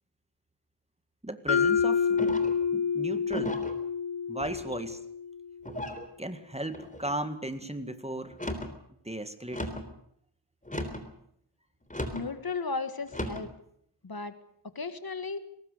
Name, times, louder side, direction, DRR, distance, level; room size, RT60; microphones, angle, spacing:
voice 1, 1.2-2.2 2.7-3.6 4.3-5.0 6.2-8.4 9.0-9.7, right 1 dB, 15° right, 9 dB, 1.8 m, -36 dB
Mallet percussion, 1.5-5.5, left 6 dB, 85° left, 0.9 m, -28 dB
sound 1, 2.2-2.6 3.3-3.8 4.4-4.9 5.6-6.1 6.7-7.1 8.3-8.8 9.5-9.9 10.6-11.1 11.9-12.3 13.1-13.5, left 1 dB, 20° left, 3.6 m, -36 dB
voice 2, 12.1-13.5 14.0-14.3 14.7-15.4, left 4 dB, 55° left, 11 dB, 1.7 m, -35 dB
21.5 x 19.5 x 6.7 m, 0.71 s
wide cardioid pair, 70°, 43 cm